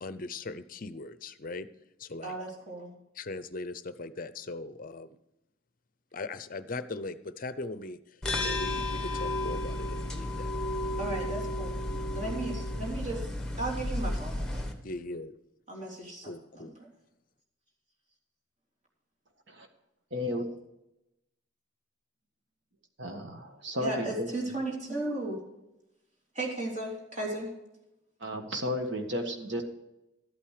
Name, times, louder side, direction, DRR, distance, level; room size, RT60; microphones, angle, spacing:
voice 1, 0.0-1.7 2.0-2.4 3.1-5.2 6.1-10.5 12.2-12.4 14.8-15.4 16.2-16.8, left 3 dB, 45° left, 13 dB, 0.6 m, -40 dB
voice 2, 2.2-2.9 11.0-11.8 12.2-13.2 13.6-14.7 15.7-16.3 16.6-16.7 23.8-25.4 26.4-27.5, right 2 dB, 35° right, -2 dB, 3.6 m, -35 dB
sound 1, 8.2-14.7, left 1 dB, 5° left, 1.4 m, -33 dB
voice 3, 20.1-20.4 23.0-24.3 28.2-29.6, left 1 dB, 65° right, 4 dB, 1.7 m, -33 dB
13.5 x 8.9 x 5.0 m, 0.91 s
head